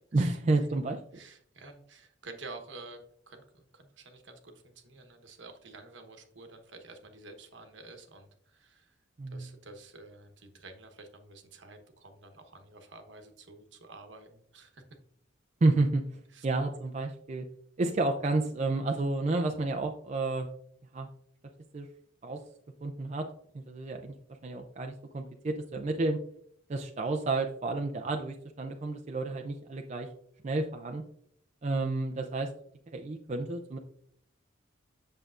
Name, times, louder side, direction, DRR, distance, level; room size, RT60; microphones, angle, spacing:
voice 1, 0.1-1.2 9.2-9.5 15.6-16.0 16.4-17.5 17.8-20.5 20.9-21.1 21.7-21.9 22.2-22.4 22.8-23.3 23.5-24.1 24.4-26.2 26.7-30.1 30.4-31.0 31.6-32.5 32.9-33.8, right 2 dB, 35° right, 4 dB, 0.4 m, -30 dB
voice 2, 1.1-3.0 3.3-9.0 9.3-14.8 16.3-16.5, right 3 dB, 70° right, 5 dB, 1.1 m, -50 dB
7.9 x 6.6 x 2.4 m, 0.68 s
head